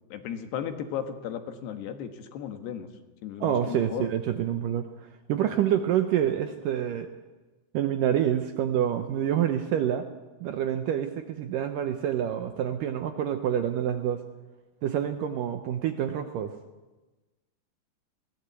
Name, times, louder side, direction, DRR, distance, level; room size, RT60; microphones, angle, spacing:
voice 1, 0.1-2.9 3.2-4.1, left 9 dB, 75° left, 8 dB, 3.5 m, -35 dB
voice 2, 3.4-4.9 5.3-7.1 7.7-10.1 10.4-14.2 14.8-16.5, right 10 dB, 75° right, 8 dB, 2.0 m, -27 dB
22.0 x 17.0 x 8.2 m, 1.2 s
omnidirectional pair, 4.8 m